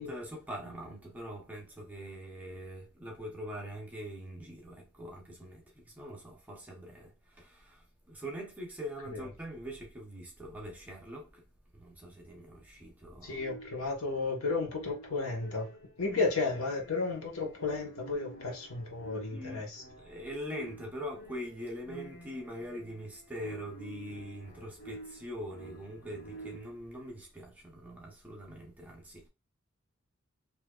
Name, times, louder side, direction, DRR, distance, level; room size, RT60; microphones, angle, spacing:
voice 1, 0.0-11.4 11.7-13.4 19.3-29.3, equal, 5° right, 0.8 m, -43 dB
voice 2, 13.2-15.7 16.0-19.8, left 3 dB, 85° left, 1.2 m, -33 dB
sound 1, 13.3-26.9, right 2 dB, 55° left, 1.6 m, -49 dB
4.7 x 2.8 x 2.4 m
head